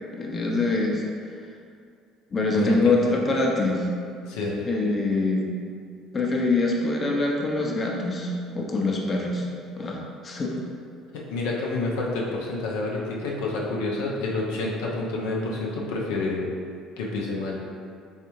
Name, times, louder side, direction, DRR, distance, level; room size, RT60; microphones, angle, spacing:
voice 1, 0.2-1.0 2.3-3.9 4.6-5.5 6.1-9.5 9.8-10.5, left 2 dB, 35° left, -1 dB, 0.6 m, -24 dB
voice 2, 2.5-3.1 4.3-4.6 11.3-16.5 17.0-17.6, left 2 dB, 85° left, -3 dB, 0.5 m, -28 dB
3.5 x 3.2 x 3.0 m, 2.3 s
supercardioid pair, 80°, 0 cm